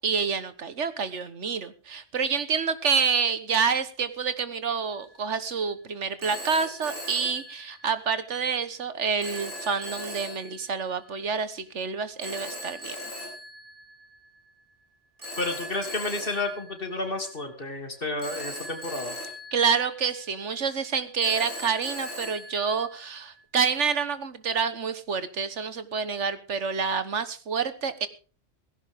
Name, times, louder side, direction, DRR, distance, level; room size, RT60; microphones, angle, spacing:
voice 1, 0.0-13.0 19.5-28.1, right 6 dB, 75° right, 13 dB, 1.6 m, -28 dB
Telephone, 4.9-5.3 6.2-8.2 9.2-10.9 12.2-14.4 15.2-17.5 18.2-20.5 21.2-23.4, left 1 dB, 50° right, 7.5 m, -40 dB
voice 2, 15.4-19.2, left 2 dB, 50° left, 5 dB, 3.1 m, -31 dB
17.5 x 16.0 x 3.7 m, 0.36 s
omnidirectional pair, 1.2 m